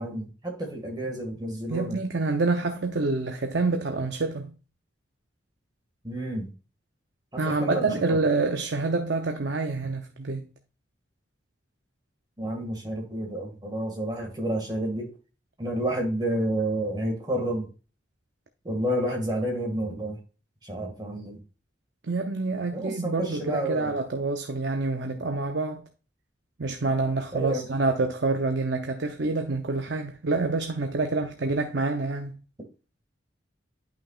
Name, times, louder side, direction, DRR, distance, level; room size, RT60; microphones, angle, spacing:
voice 1, 0.0-2.0 6.0-6.5 7.3-8.2 12.4-15.1 15.6-17.7 18.6-20.2 20.6-21.4 22.7-23.9 27.3-27.6, right 1 dB, 20° right, 1.9 m, -30 dB
voice 2, 1.7-4.5 7.4-10.5 22.1-25.9 26.6-32.3, right 3 dB, 60° right, 0.7 m, -27 dB
11.0 x 5.9 x 2.4 m
head